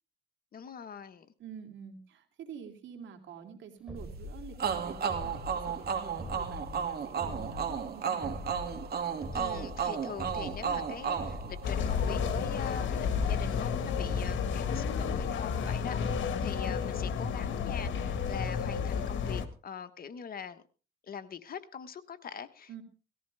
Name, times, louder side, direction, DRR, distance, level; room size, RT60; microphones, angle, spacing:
voice 1, 0.5-1.3 9.3-20.6 21.0-22.8, left 7 dB, 50° left, 1.3 m, -43 dB
voice 2, 1.4-8.4 22.7-22.8, right 7 dB, 70° right, 2.9 m, -47 dB
sound 1, 3.9-17.0, left 2 dB, 5° right, 3.9 m, -44 dB
sound 2, 4.6-12.2, right 7 dB, 50° right, 2.4 m, -34 dB
sound 3, 11.6-19.5, left 6 dB, 70° left, 1.7 m, -31 dB
17.5 x 14.0 x 3.4 m
cardioid pair, 90°, 20 cm